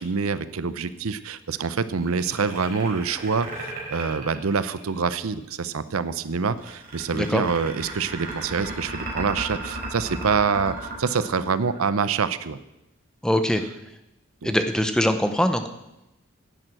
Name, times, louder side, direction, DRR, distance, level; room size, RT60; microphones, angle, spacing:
voice 1, 0.0-12.6 14.4-14.6, right 5 dB, 80° right, 14 dB, 0.6 m, -26 dB
sound 1, 2.0-5.1 6.6-12.1, right 2 dB, 40° right, 4.2 m, -35 dB
voice 2, 13.2-13.6 14.4-15.7, equal, 5° left, 8 dB, 0.7 m, -22 dB
11.0 x 9.1 x 7.6 m, 0.92 s
head